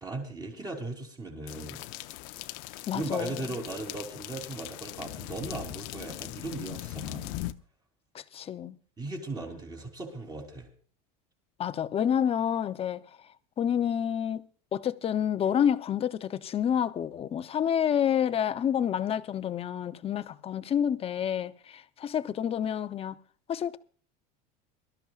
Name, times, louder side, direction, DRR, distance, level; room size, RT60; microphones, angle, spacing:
voice 1, 0.0-1.8 2.9-7.4 9.0-10.7, right 2 dB, 20° right, 3.3 m, -37 dB
sound 1, 1.5-7.5, left 17 dB, 65° left, 0.7 m, -40 dB
voice 2, 2.9-3.4 8.1-8.7 11.6-13.0 13.6-14.5 14.7-23.2 23.5-23.8, left 9 dB, 30° left, 0.7 m, -28 dB
23.5 x 13.0 x 2.4 m
supercardioid pair, 130°, 21 cm